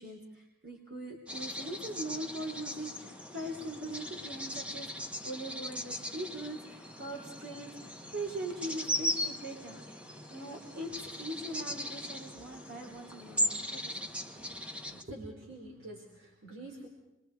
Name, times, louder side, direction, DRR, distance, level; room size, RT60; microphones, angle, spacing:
voice 1, 0.0-9.8 10.3-14.1 14.4-14.5, right 1 dB, 55° right, -2 dB, 3.5 m, -41 dB
sound 1, 1.3-15.0, equal, 5° right, 1.3 m, -38 dB
voice 2, 14.9-16.9, right 1 dB, 85° right, -1 dB, 4.8 m, -47 dB
27.5 x 23.0 x 4.7 m, 0.88 s
head